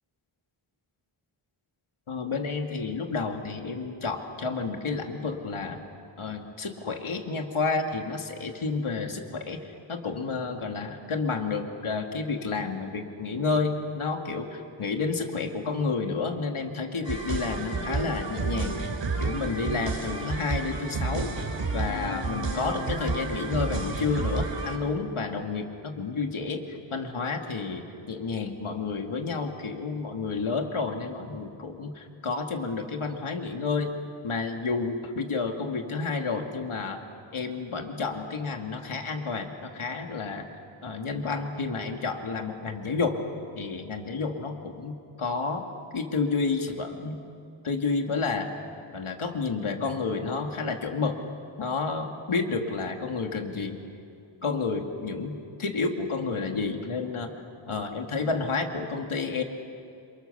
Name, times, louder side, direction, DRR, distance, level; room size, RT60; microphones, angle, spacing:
voice 1, 2.1-5.8 6.2-18.8 19.2-21.3 21.7-33.9 34.2-37.0 37.3-40.5 40.8-43.2 43.6-45.7 45.9-47.2 47.6-48.5 48.9-51.2 51.6-53.8 54.4-57.3 57.7-59.4, left 4 dB, 80° left, 3 dB, 2.5 m, -30 dB
sound 1, 17.0-24.8, right 3 dB, 60° right, 3.1 m, -31 dB
29.5 x 27.0 x 7.0 m, 2.5 s
wide cardioid pair, 95°, 49 cm